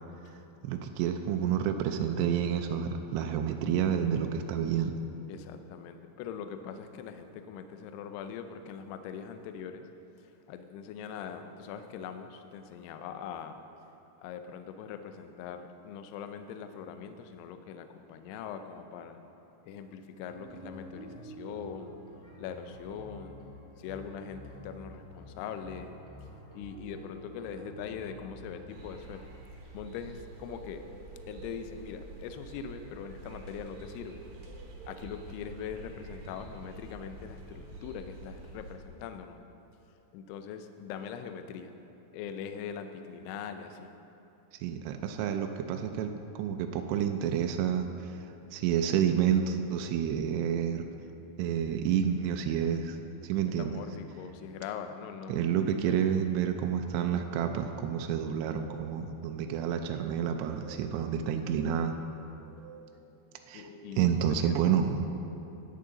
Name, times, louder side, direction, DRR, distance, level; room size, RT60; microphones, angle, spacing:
voice 1, 0.6-4.9 44.6-48.3 48.5-50.9 51.4-53.0 53.2-53.8 55.3-61.9 63.5-63.7 64.0-65.1, right 8 dB, 85° right, 5 dB, 2.4 m, -29 dB
voice 2, 5.3-9.8 10.5-13.6 14.2-19.2 19.6-21.9 22.4-23.4 23.8-25.9 26.5-29.3 29.7-30.8 31.3-34.2 34.9-39.4 40.1-41.7 42.1-43.9 53.6-55.9 63.5-64.0 64.4-64.6, left 7 dB, 85° left, 8 dB, 2.4 m, -42 dB
sound 1, 20.0-29.2, right 1 dB, 20° right, 0.7 m, -48 dB
sound 2, 28.7-38.7, right 2 dB, 70° right, 1.8 m, -47 dB
sound 3, 58.6-58.8 59.6-59.8 60.6-60.8 61.6-61.8 62.6-62.8 63.6-63.9, right 6 dB, 55° left, 3.1 m, -50 dB
13.5 x 9.3 x 3.8 m, 2.9 s
omnidirectional pair, 5.3 m